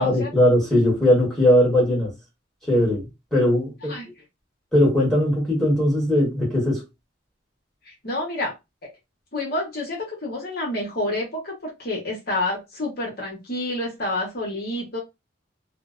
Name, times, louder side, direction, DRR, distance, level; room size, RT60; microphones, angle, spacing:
voice 1, 0.0-2.1 2.7-3.9 4.7-6.8, left 1 dB, ahead, 1.2 m, -19 dB
voice 2, 7.8-8.5 8.8-8.9 9.3-15.0, left 1 dB, 50° left, 0.9 m, -28 dB
2.6 x 2.0 x 2.4 m
head